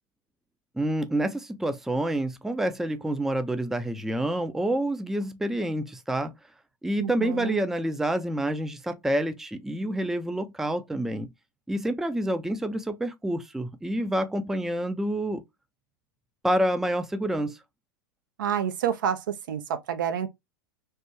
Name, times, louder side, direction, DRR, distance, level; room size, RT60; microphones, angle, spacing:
voice 1, 0.8-6.3 6.8-11.3 11.7-15.4 16.4-17.6, right 1 dB, 5° right, 0.4 m, -28 dB
voice 2, 7.0-7.6 18.4-20.3, right 9 dB, 75° right, 0.5 m, -28 dB
3.3 x 2.1 x 2.9 m
hypercardioid pair, 100°, 11 cm